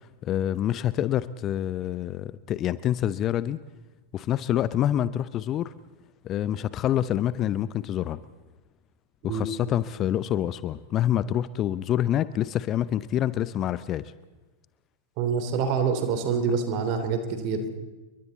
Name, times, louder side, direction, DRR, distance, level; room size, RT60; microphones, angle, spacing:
voice 1, 0.2-3.6 4.1-5.7 6.2-8.2 9.2-14.1, left 11 dB, 30° left, 17 dB, 0.7 m, -27 dB
voice 2, 15.2-17.7, right 5 dB, 45° right, 9 dB, 3.2 m, -26 dB
29.5 x 23.5 x 4.2 m, 1.2 s
figure-of-eight pair, 90°, 0 cm